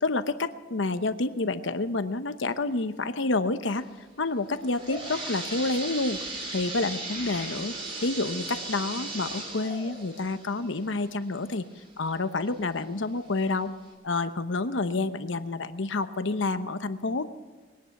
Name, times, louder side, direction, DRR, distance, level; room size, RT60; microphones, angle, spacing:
voice 1, 0.0-3.9 4.2-6.2 6.5-7.7 8.0-13.7 14.0-17.3, left 3 dB, 80° left, 11 dB, 0.9 m, -29 dB
sound 1, 4.5-12.1 12.6-12.7 13.4-13.5 13.9-14.0, right 2 dB, 30° right, 3.2 m, -37 dB
21.0 x 10.5 x 5.9 m, 1.4 s
head